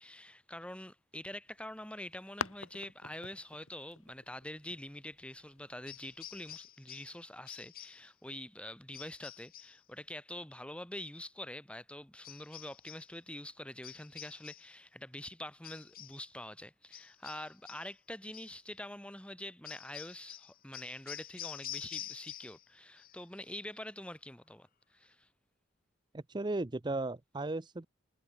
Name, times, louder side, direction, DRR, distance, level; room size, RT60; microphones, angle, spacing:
voice 1, 0.0-25.3, left 1 dB, 5° left, 2.1 m, -46 dB
sound 1, 1.5-6.6, left 5 dB, 75° left, 2.0 m, -47 dB
sound 2, 5.9-7.2 7.5-8.1 8.9-9.8 12.2-13.1 13.8-14.8 15.6-16.3 16.9-17.9 18.3-18.6 19.6-22.7 23.0-23.5, left 12 dB, 45° left, 1.3 m, -48 dB
voice 2, 26.1-27.9, right 2 dB, 20° right, 0.6 m, -36 dB
head